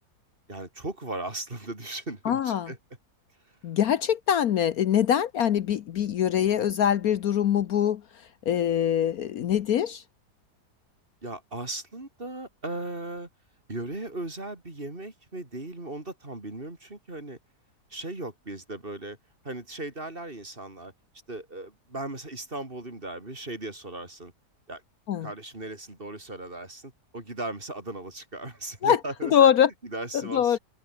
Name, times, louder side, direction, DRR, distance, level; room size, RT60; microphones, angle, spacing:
voice 1, 0.5-2.8 11.2-13.3 13.7-17.4 17.9-19.2 19.4-20.9 21.3-24.3 24.7-24.8 25.2-29.5 29.8-30.6, right 2 dB, 30° right, 4.0 m, -37 dB
voice 2, 2.2-2.7 3.6-8.0 8.5-10.0 25.1-25.3 28.8-29.0 29.3-29.7 30.3-30.6, left 9 dB, 65° left, 1.2 m, -23 dB
omnidirectional pair, 1.8 m